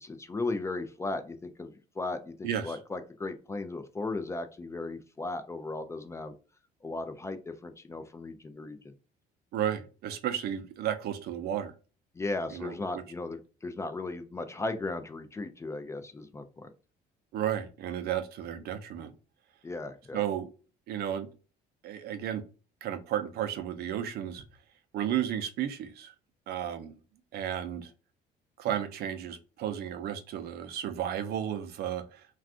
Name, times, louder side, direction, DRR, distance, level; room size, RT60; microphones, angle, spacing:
voice 1, 0.0-6.3 6.8-8.8 12.1-16.7 19.6-20.2, left 2 dB, 15° left, 9 dB, 0.3 m, -36 dB
voice 2, 2.4-2.8 9.5-11.7 12.5-12.8 17.3-19.1 20.1-20.5 20.9-21.3 21.8-22.4 22.8-24.4 24.9-26.1 26.5-27.0 27.3-27.9 28.6-32.3, right 10 dB, 70° right, 8 dB, 0.5 m, -33 dB
2.4 x 2.3 x 3.5 m, 0.35 s
cardioid pair, 110°, 17 cm